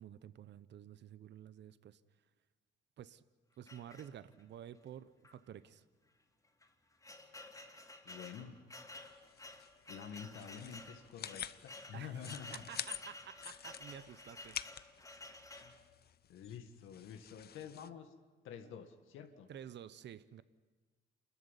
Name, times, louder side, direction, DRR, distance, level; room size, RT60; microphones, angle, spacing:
voice 1, 0.0-2.0 3.0-3.2 3.6-5.8 11.9-12.3 12.7-14.6 19.5-20.4, right 10 dB, 60° right, 16 dB, 0.9 m, -51 dB
sound 1, 3.7-4.5 5.2-5.4 5.7-5.8 6.5-15.8, left 2 dB, 15° left, 2.8 m, -53 dB
voice 2, 8.0-8.5 9.9-12.7 15.6-15.7 16.3-18.1 18.4-19.5, left 7 dB, 85° left, 6 dB, 1.9 m, -48 dB
sound 2, 9.0-17.9, left 9 dB, 55° left, 0.8 m, -49 dB
28.0 x 14.0 x 9.9 m, 1.4 s
cardioid pair, 90°, 20 cm